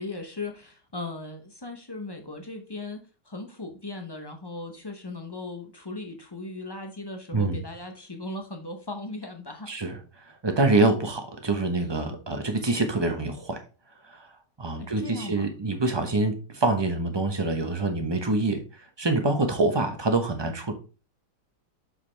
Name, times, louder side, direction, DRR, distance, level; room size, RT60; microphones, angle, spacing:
voice 1, 0.0-9.7 14.8-15.5, left 2 dB, 35° left, 4 dB, 0.3 m, -38 dB
voice 2, 7.3-7.6 9.7-10.0 10.3-13.6 14.1-14.3 14.6-20.7, right 2 dB, 20° right, 5 dB, 0.8 m, -26 dB
6.7 x 5.9 x 3.3 m, 0.34 s
omnidirectional pair, 1.9 m